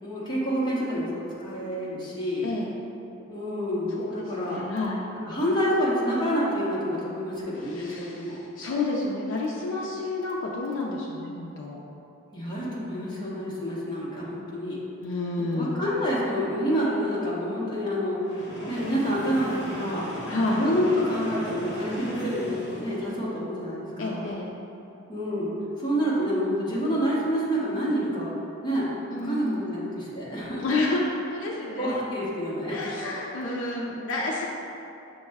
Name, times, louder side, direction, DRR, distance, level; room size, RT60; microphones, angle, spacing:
voice 1, 0.0-2.5 3.3-4.6 5.3-8.4 12.3-14.8 15.5-20.1 20.5-24.3 25.1-25.5 25.8-28.3 28.6-28.9 29.1-30.6 31.8-32.7, equal, 20° left, -7 dB, 0.8 m, -28 dB
voice 2, 2.4-2.7 4.0-5.0 7.5-11.8 15.0-15.8 20.3-20.7 24.0-24.5 29.1-29.6 30.6-32.0 32.6-34.5, left 2 dB, 70° left, -3 dB, 0.4 m, -30 dB
Train, 18.2-23.2, equal, 55° left, 0.8 m, -37 dB
6.2 x 2.1 x 3.4 m, 2.9 s
head